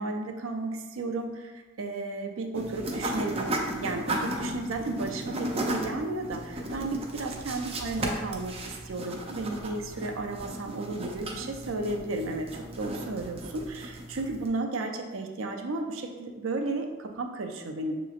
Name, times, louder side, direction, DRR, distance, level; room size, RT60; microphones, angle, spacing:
voice 1, 0.0-18.0, right 2 dB, 80° right, 3 dB, 0.5 m, -33 dB
sound 1, 2.5-14.5, right 1 dB, 30° right, 0.5 m, -35 dB
5.8 x 2.9 x 2.4 m, 1.3 s
head